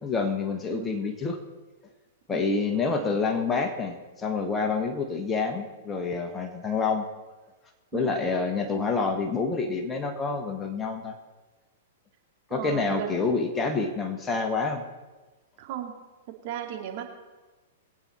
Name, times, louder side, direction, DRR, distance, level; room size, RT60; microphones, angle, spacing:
voice 1, 0.0-1.4 2.3-7.1 7.9-11.1 12.5-14.8, left 4 dB, 15° left, 4 dB, 1.6 m, -27 dB
voice 2, 0.7-1.0 2.3-3.1 7.9-8.2 12.5-13.3 15.6-15.9 16.4-17.0, right 9 dB, 50° right, 2 dB, 2.6 m, -37 dB
22.0 x 9.1 x 4.5 m, 1.2 s
figure-of-eight pair, 105°, 0 cm